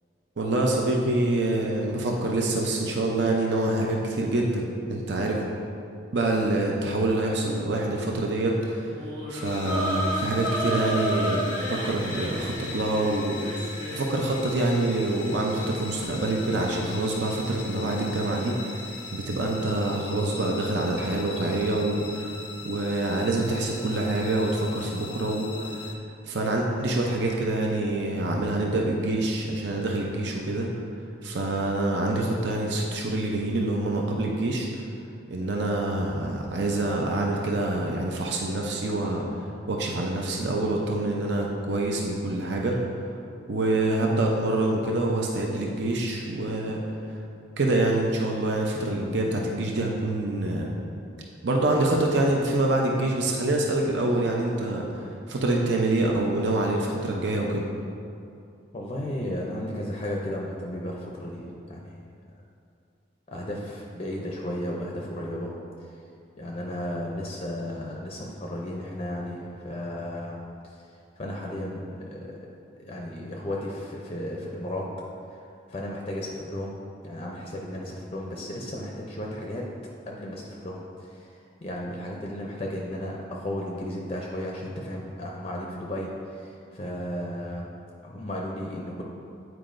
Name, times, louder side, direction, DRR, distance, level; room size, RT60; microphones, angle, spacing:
voice 1, 0.4-5.4 6.1-8.9 9.3-13.6 13.9-18.6 19.1-22.3 22.6-25.8 26.3-30.7 31.2-34.7 35.3-39.2 39.7-42.8 43.5-46.8 47.6-50.7 51.4-57.7, right 2 dB, 65° right, -1 dB, 0.6 m, -26 dB
sound 1, 8.9-14.1, equal, 20° right, 1.1 m, -31 dB
sound 2, 9.4-26.0, left 4 dB, 90° left, 0.6 m, -40 dB
voice 2, 58.7-62.0 63.3-65.5 65.8-65.9 66.4-70.3 70.6-70.8 71.2-72.4 72.8-74.9 75.3-76.8 77.0-79.6 80.1-81.3 81.6-87.8 88.0-89.0, left 1 dB, 30° left, -1 dB, 0.5 m, -34 dB
9.1 x 4.7 x 2.5 m, 2.5 s
head